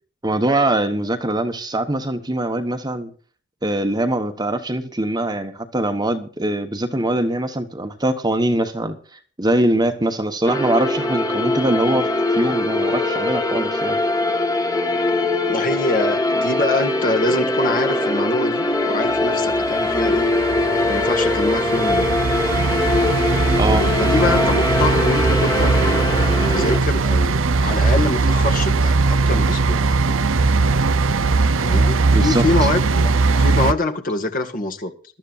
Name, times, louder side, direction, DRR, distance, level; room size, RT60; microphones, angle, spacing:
voice 1, 0.2-3.1 3.6-12.1 12.3-14.0 23.6-23.9 32.1-32.4, right 1 dB, 20° right, 1.3 m, -22 dB
sound 1, 10.4-26.8, left 2 dB, 20° left, 1.6 m, -21 dB
voice 2, 15.5-20.3 20.9-22.1 23.6-29.8 31.6-33.1 33.4-34.9, left 2 dB, 45° left, 1.9 m, -24 dB
sound 2, 19.5-33.7, right 3 dB, 75° right, 0.7 m, -19 dB
22.5 x 12.5 x 2.6 m
head